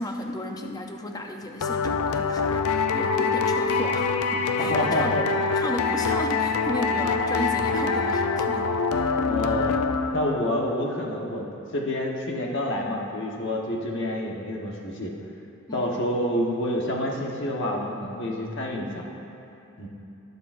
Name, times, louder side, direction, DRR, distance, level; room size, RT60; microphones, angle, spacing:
voice 1, 0.0-8.8 15.7-15.9, left 1 dB, 15° left, 3 dB, 0.5 m, -34 dB
sound 1, 1.6-10.5, left 4 dB, 85° left, 0.5 m, -25 dB
voice 2, 4.6-5.2 9.2-9.7 10.1-11.5 11.7-15.1 15.7-19.0 19.8-19.9, left 1 dB, 55° left, -1 dB, 1.1 m, -28 dB
19.5 x 6.7 x 2.5 m, 2.8 s
head